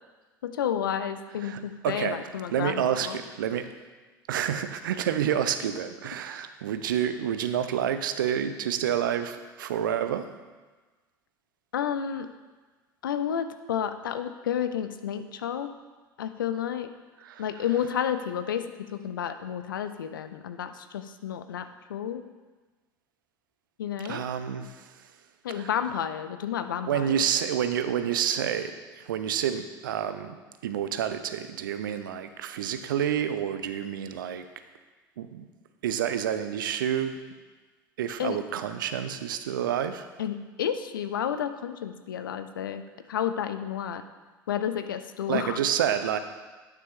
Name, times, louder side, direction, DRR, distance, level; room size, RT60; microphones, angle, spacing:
voice 1, 0.4-3.2 11.7-12.3 13.0-15.7 16.2-16.9 17.4-22.2 23.8-24.2 25.4-27.2 38.2-38.4 40.2-42.8 43.1-44.0 44.5-45.6, left 9 dB, 75° left, 10 dB, 0.5 m, -31 dB
voice 2, 1.4-2.2 2.5-3.7 4.3-10.3 17.2-17.5 24.0-25.1 25.5-25.7 26.8-34.5 35.2-35.5 35.8-37.2 38.0-40.1 45.3-46.2, right 9 dB, 75° right, 10 dB, 0.6 m, -29 dB
9.7 x 6.2 x 3.5 m, 1.3 s
figure-of-eight pair, 70°, 11 cm